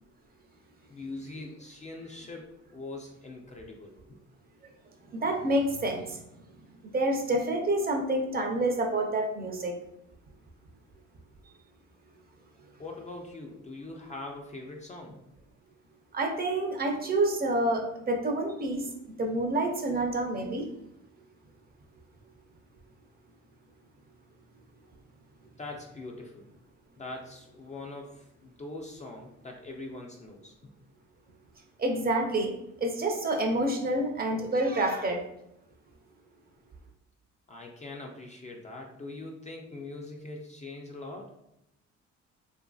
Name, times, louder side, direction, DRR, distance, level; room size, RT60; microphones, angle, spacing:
voice 1, 0.9-4.2 12.8-15.2 25.6-26.5 27.0-30.7 37.5-41.4, left 2 dB, 25° left, 0 dB, 0.3 m, -42 dB
voice 2, 5.1-6.2 6.8-9.8 16.1-20.7 31.8-32.5 32.8-35.2, right 1 dB, 30° right, 3 dB, 0.5 m, -28 dB
2.7 x 2.5 x 2.2 m, 0.82 s
cardioid pair, 90°, 30 cm